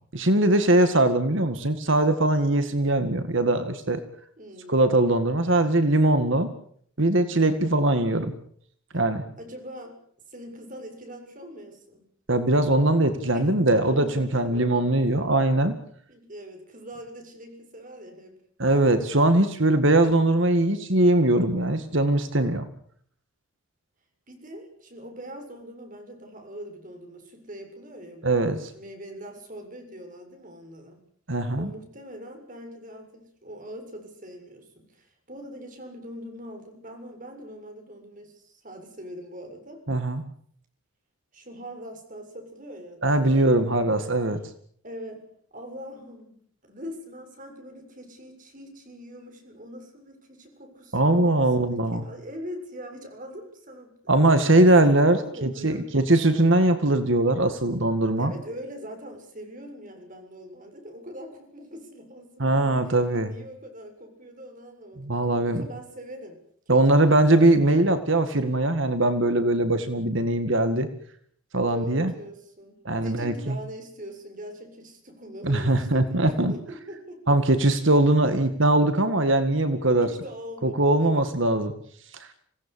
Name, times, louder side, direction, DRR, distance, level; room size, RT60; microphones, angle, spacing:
voice 1, 0.1-4.0 4.7-6.5 7.0-8.3 8.9-9.2 12.3-15.8 18.6-22.7 28.2-28.7 31.3-31.7 39.9-40.2 43.0-44.4 50.9-52.0 54.1-58.3 62.4-63.3 65.0-65.6 66.7-70.9 71.5-72.1 72.9-73.6 75.4-76.5 77.3-80.1 80.6-81.7 82.1-82.3, right 1 dB, 60° right, 10 dB, 2.0 m, -21 dB
voice 2, 4.4-4.8 8.9-9.0 9.4-10.0 10.3-12.1 13.3-14.7 16.1-18.4 24.3-31.0 31.6-39.8 41.3-44.0 44.8-46.4 46.6-54.0 54.4-55.8 58.2-65.0 65.4-66.4 66.7-67.5 71.7-77.4 80.0-81.3, equal, 40° right, 4 dB, 7.3 m, -42 dB
27.0 x 18.0 x 8.6 m, 0.64 s
head